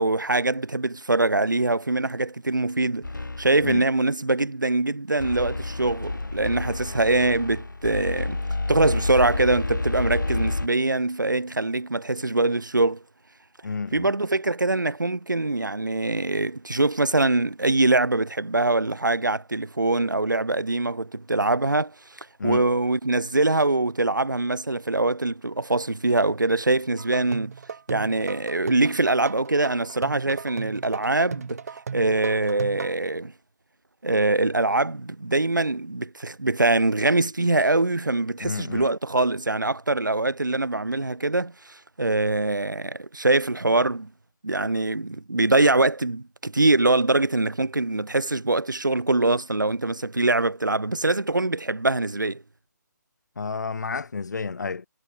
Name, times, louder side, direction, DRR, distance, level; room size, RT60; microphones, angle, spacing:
voice 1, 0.0-3.1 3.4-8.4 8.7-13.0 13.9-27.5 27.9-31.6 31.9-33.3 34.0-44.1 44.4-52.4, right 2 dB, 90° right, 1.3 m, -23 dB
sound 1, 3.0-3.8 5.2-10.7, left 2 dB, 90° left, 1.1 m, -29 dB
voice 2, 13.6-14.1 22.4-22.7 38.4-38.9 53.4-54.9, left 4 dB, 70° left, 1.1 m, -31 dB
sound 2, 27.0-32.9, right 6 dB, 55° right, 3.5 m, -36 dB
figure-of-eight pair, 145°, 10 cm